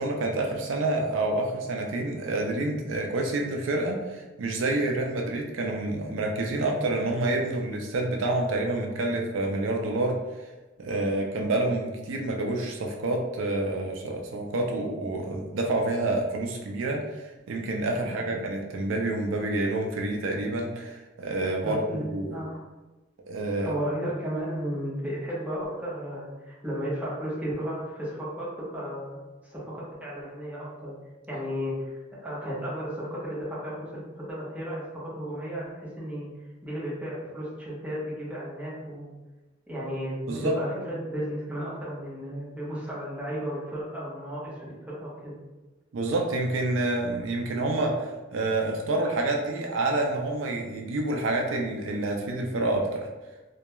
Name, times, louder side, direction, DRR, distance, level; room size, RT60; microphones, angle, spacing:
voice 1, 0.0-10.2 10.8-17.0 17.5-22.4 23.3-23.8 40.3-40.5 45.9-53.1, right 2 dB, 85° right, 1 dB, 0.4 m, -28 dB
voice 2, 21.6-22.6 23.6-29.2 29.4-30.9 31.3-31.9 32.2-35.7 36.0-36.3 36.6-39.1 39.7-45.3, equal, 10° right, -8 dB, 0.8 m, -34 dB
2.2 x 2.2 x 2.9 m, 1.1 s
head